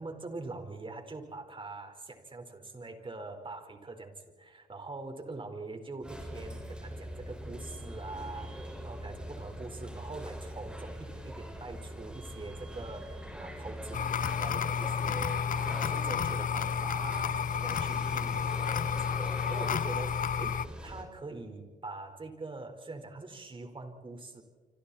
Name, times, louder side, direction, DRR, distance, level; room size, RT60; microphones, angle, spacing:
voice 1, 0.0-15.5 15.8-24.4, right 3 dB, 30° right, 5 dB, 4.7 m, -44 dB
sound 1, 6.0-21.0, equal, 5° right, 5.6 m, -42 dB
sound 2, 13.9-20.7, left 7 dB, 60° left, 0.9 m, -31 dB
28.5 x 25.5 x 4.4 m, 1.4 s
supercardioid pair, 65°, 16 cm